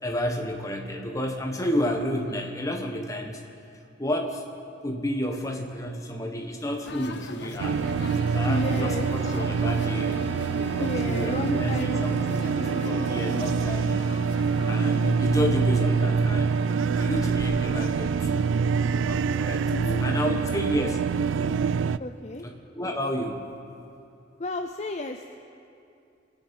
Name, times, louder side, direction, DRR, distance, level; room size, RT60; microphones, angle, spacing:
voice 1, 0.0-3.4 4.0-4.4 4.8-7.8 8.3-10.2 10.6-14.1 14.7-16.6 16.9-18.5 19.0-19.7 20.0-21.0 22.7-23.5, left 1 dB, 15° left, 1 dB, 1.4 m, -31 dB
sound 1, 6.8-15.1, left 2 dB, 60° left, 0.8 m, -38 dB
sound 2, 7.6-22.0, right 5 dB, 85° right, 0.3 m, -25 dB
Organ, 8.0-18.9, left 1 dB, 30° right, 1.1 m, -49 dB
voice 2, 8.4-9.1 10.8-12.2 19.7-20.2 22.0-22.5 24.4-25.4, left 2 dB, 35° left, 5 dB, 0.5 m, -32 dB
25.0 x 9.5 x 5.5 m, 2.6 s
head